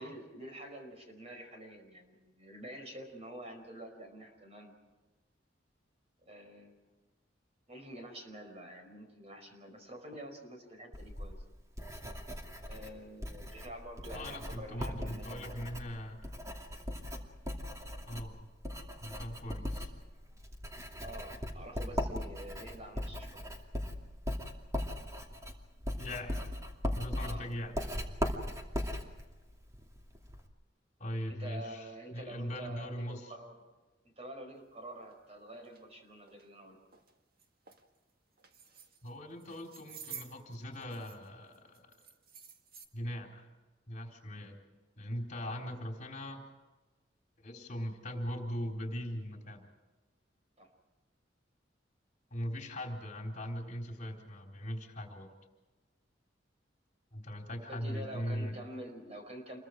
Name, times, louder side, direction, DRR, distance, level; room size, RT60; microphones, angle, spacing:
voice 1, 0.0-4.7 6.2-6.8 7.7-11.4 12.6-15.7 21.0-23.4 27.1-27.5 31.3-33.5 34.2-36.8 45.4-45.7 50.6-50.7 57.7-59.6, right 1 dB, 35° right, 3 dB, 4.9 m, -47 dB
Writing, 10.9-30.5, equal, 20° right, 2.5 m, -39 dB
voice 2, 14.1-16.2 18.1-18.4 19.0-19.9 26.0-26.4 26.9-27.8 31.0-33.3 39.0-41.9 42.9-43.5 43.9-44.6 45.0-46.5 47.4-49.7 52.3-55.3 57.1-58.6, equal, 45° left, 1 dB, 3.9 m, -40 dB
sound 1, 35.0-35.1 35.6-35.8 36.3-36.5 36.9-37.1 37.4-37.8 38.4-39.1 39.4-41.3 41.5-42.9, right 7 dB, 55° right, 1.9 m, -51 dB
28.0 x 22.5 x 4.9 m, 1.2 s
head